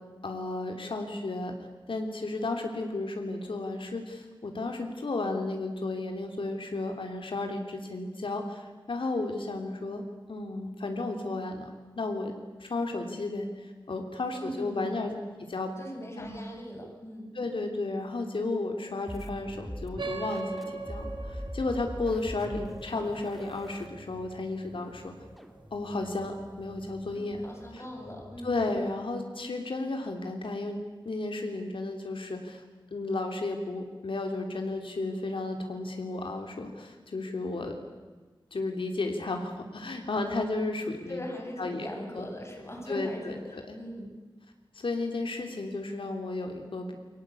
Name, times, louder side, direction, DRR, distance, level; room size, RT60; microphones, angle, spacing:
voice 1, 0.2-1.5 1.9-11.7 12.0-12.3 12.6-15.1 15.5-15.7 16.2-16.4 17.3-25.1 25.7-27.4 27.7-27.8 28.4-32.6 32.9-37.7 38.5-41.2 41.6-41.9 42.1-42.3 42.9-43.8 44.7-47.0, left 2 dB, 85° left, 4 dB, 3.1 m, -33 dB
voice 2, 14.3-15.1 15.8-17.3 27.4-28.6 41.1-44.1, equal, 30° left, 1 dB, 7.9 m, -40 dB
sound 1, 19.1-28.8, equal, ahead, 2.6 m, -44 dB
sound 2, 20.0-24.9, right 3 dB, 65° right, 4.4 m, -40 dB
29.0 x 23.5 x 8.4 m, 1.3 s
wide cardioid pair, 80°, 9 cm